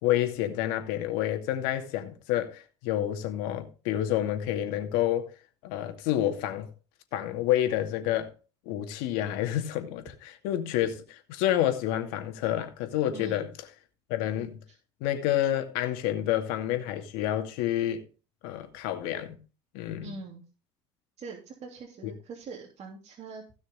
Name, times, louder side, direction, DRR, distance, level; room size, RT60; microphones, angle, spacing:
voice 1, 0.0-5.3 5.6-6.7 7.1-8.3 8.7-13.5 14.1-14.6 15.0-18.0 18.4-19.4 19.7-20.1 22.0-22.1, left 12 dB, 70° left, 2.4 m, -29 dB
voice 2, 13.1-13.5 20.0-20.4 21.2-23.4, right 4 dB, 45° right, 3.2 m, -43 dB
16.5 x 6.3 x 3.7 m
hypercardioid pair, 75°, 15 cm